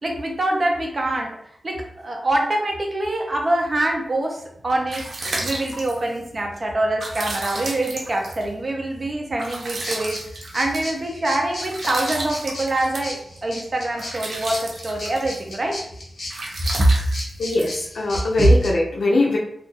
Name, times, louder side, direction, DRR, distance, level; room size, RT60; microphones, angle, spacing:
voice 1, 0.0-1.4 1.6-5.1 5.4-10.2 10.5-15.8 16.7-16.9 18.4-18.5, right 1 dB, 40° right, 1 dB, 0.7 m, -24 dB
sound 1, 4.5-18.4, right 2 dB, 75° right, 0.7 m, -34 dB
sound 2, 9.8-18.7, left 1 dB, 60° left, 1.1 m, -35 dB
voice 2, 17.4-19.4, left 2 dB, 80° left, -2 dB, 0.5 m, -21 dB
2.5 x 2.5 x 3.9 m, 0.70 s
wide cardioid pair, 105°, 0 cm